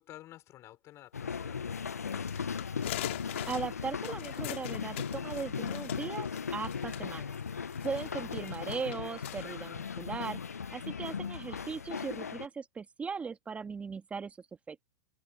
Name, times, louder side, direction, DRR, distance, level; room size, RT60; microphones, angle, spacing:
voice 1, 0.0-2.3 7.9-8.4, left 14 dB, 35° left, 6.1 m, -53 dB
sound 1, 1.1-12.5, left 6 dB, 85° left, 1.0 m, -38 dB
sound 2, 2.3-9.4, left 16 dB, 60° left, 3.4 m, -43 dB
voice 2, 3.5-7.4 7.8-10.4 10.7-14.4 14.7-14.8, right 5 dB, 15° right, 2.2 m, -38 dB
hypercardioid pair, 105°, 8 cm